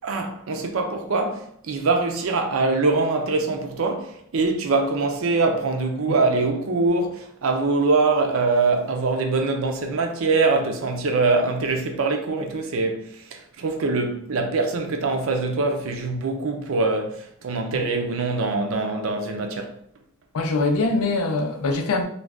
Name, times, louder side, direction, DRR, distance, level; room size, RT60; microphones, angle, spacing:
voice 1, 0.0-13.0 13.3-19.7, right 3 dB, 70° right, 0.5 m, -23 dB
voice 2, 20.3-22.0, left 3 dB, 80° left, 0.5 m, -23 dB
2.4 x 2.3 x 3.4 m
head